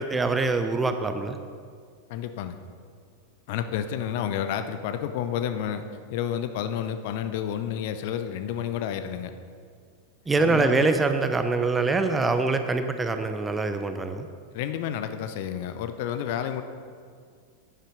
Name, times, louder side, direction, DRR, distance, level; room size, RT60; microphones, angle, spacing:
voice 1, 0.0-1.4 10.3-14.3, right 3 dB, 15° right, 8 dB, 0.8 m, -24 dB
voice 2, 2.1-2.6 3.5-5.8 6.1-9.3 10.4-10.9 14.5-16.6, left 9 dB, 50° left, 9 dB, 0.7 m, -30 dB
10.0 x 10.0 x 5.2 m, 2.1 s
figure-of-eight pair, 90°, 0 cm